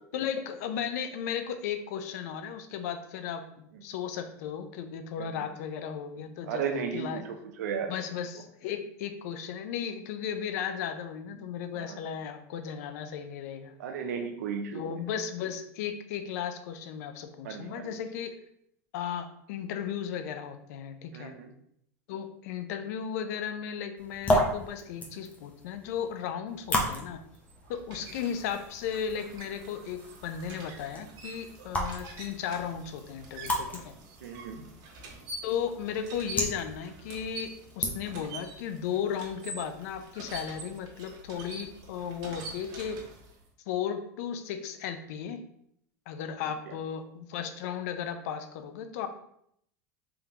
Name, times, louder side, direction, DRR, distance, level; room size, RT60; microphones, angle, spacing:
voice 1, 0.1-6.6 6.9-7.2 7.9-13.7 14.7-18.4 18.9-21.3 22.1-27.2 27.7-34.0 35.4-43.0 43.7-45.4 46.1-49.1, left 8 dB, 75° left, 9 dB, 0.5 m, -35 dB
voice 2, 6.4-7.9 11.7-12.0 13.8-14.8 17.4-17.9 21.1-21.5 31.6-31.7 34.2-34.6, right 6 dB, 85° right, 5 dB, 0.7 m, -34 dB
sound 1, 24.0-38.4, left 1 dB, 15° left, 0.9 m, -35 dB
sound 2, 27.2-43.5, right 3 dB, 55° right, 1.1 m, -46 dB
3.5 x 3.5 x 2.9 m, 0.71 s
supercardioid pair, 105°, 9 cm